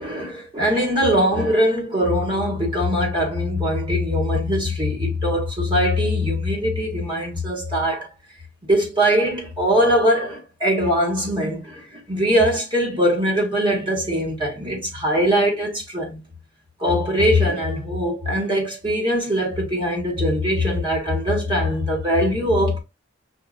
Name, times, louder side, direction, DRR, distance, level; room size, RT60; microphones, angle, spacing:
voice 1, 0.0-8.1 8.7-16.2 16.8-22.8, equal, 25° right, 1.4 m, -21 dB
5.7 x 2.6 x 2.5 m
head